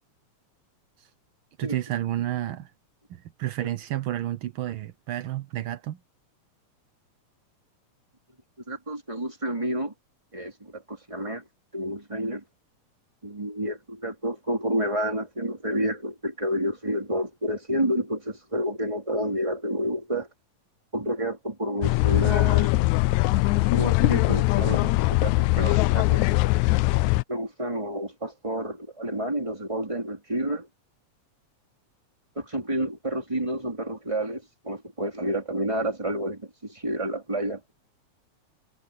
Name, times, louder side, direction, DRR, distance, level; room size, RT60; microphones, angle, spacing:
voice 1, 1.6-2.7 3.1-6.0, right 13 dB, 85° right, 1.1 m, -31 dB
voice 2, 8.7-9.9 10.3-11.4 11.7-12.4 13.2-20.3 20.9-22.9 23.7-24.9 25.2-26.3 27.3-30.7 32.4-37.7, equal, 10° right, 3.7 m, -29 dB
sound 1, 21.8-27.2, left 20 dB, 80° left, 1.9 m, -21 dB
omnidirectional pair, 3.5 m